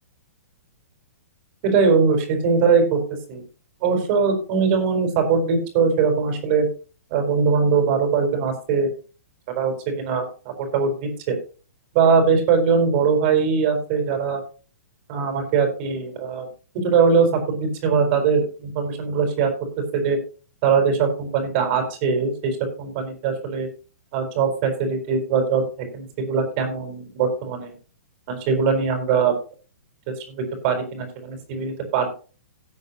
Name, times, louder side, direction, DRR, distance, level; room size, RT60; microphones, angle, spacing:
voice 1, 1.6-3.0 3.3-3.4 3.8-6.7 7.1-8.9 9.6-11.4 11.9-14.4 15.1-16.5 16.7-19.5 19.9-20.2 20.6-23.7 24.1-25.6 25.9-27.7 28.3-29.3 30.4-32.1, right 5 dB, 45° right, 5 dB, 4.4 m, -21 dB
17.5 x 7.9 x 2.9 m, 0.36 s
hypercardioid pair, 125°, 9 cm